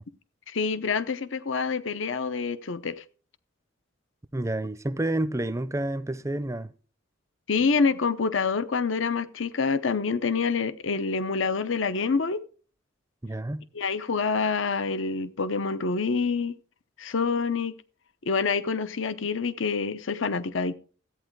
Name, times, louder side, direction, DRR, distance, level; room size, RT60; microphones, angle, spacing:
voice 1, 0.5-3.0 7.5-12.4 13.7-16.6 17.0-17.7 18.2-20.7, left 5 dB, 70° left, 0.7 m, -27 dB
voice 2, 4.3-6.7 13.2-13.6, right 1 dB, 15° right, 0.5 m, -29 dB
14.0 x 8.9 x 4.6 m
head